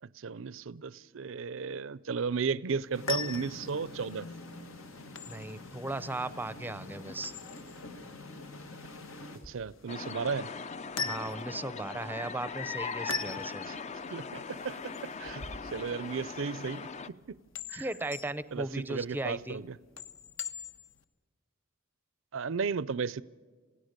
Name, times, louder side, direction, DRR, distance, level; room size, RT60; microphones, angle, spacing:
voice 1, 0.2-4.3 9.5-10.5 13.7-13.8 14.1-15.5 15.7-17.4 17.7-17.9 18.5-19.8 22.3-23.2, right 5 dB, 70° right, 0.5 m, -34 dB
sound 1, 2.8-21.0, left 5 dB, 70° left, 1.2 m, -43 dB
sound 2, 2.9-9.4, left 2 dB, 85° left, 2.3 m, -46 dB
voice 2, 5.3-7.3 11.0-13.6 17.7-19.6, right 2 dB, 10° right, 0.6 m, -37 dB
sound 3, 9.9-17.1, left 5 dB, 35° left, 0.5 m, -40 dB
28.0 x 17.0 x 6.6 m
head